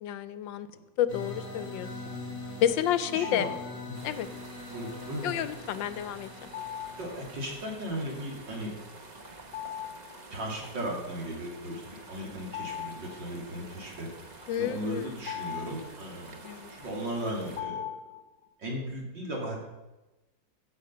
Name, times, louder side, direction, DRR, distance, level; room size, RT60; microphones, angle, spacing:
voice 1, 0.0-0.7 1.0-1.9 2.6-3.5 4.0-4.3 5.2-6.5 14.5-15.0 16.4-16.7, left 10 dB, 85° left, 13 dB, 1.4 m, -30 dB
sound 1, 1.1-9.9, left 2 dB, 45° left, 3.2 m, -44 dB
voice 2, 3.1-3.5 4.7-5.4 5.9-6.1 7.0-8.8 10.3-14.1 14.6-16.4 16.7-17.8 18.6-19.6, equal, 75° right, -2 dB, 3.3 m, -36 dB
sound 2, 3.2-3.9 6.5-7.2 9.4-10.2 10.5-10.6 12.1-13.6 14.5-18.5, left 10 dB, 70° left, 1.4 m, -40 dB
sound 3, 3.9-17.6, right 2 dB, 30° right, 0.8 m, -49 dB
15.0 x 6.5 x 5.6 m, 1.1 s
omnidirectional pair, 2.0 m